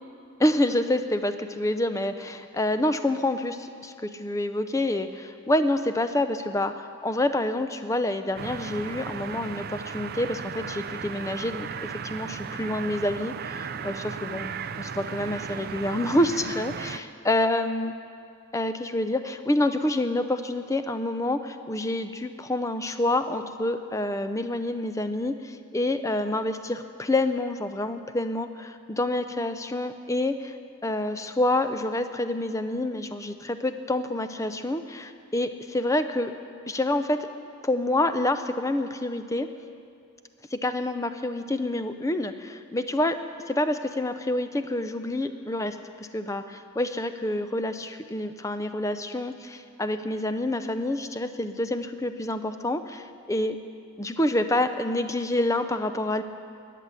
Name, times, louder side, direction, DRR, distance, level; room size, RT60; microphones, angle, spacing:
voice 1, 0.4-17.9 18.5-30.5 30.8-36.3 36.7-37.3 37.6-39.5 40.5-43.2 43.5-45.8 46.1-53.6 54.0-56.2, left 1 dB, 15° left, 9 dB, 0.5 m, -27 dB
sound 1, 8.4-17.0, right 6 dB, 45° right, 0.4 m, -36 dB
14.0 x 9.2 x 8.2 m, 2.4 s
head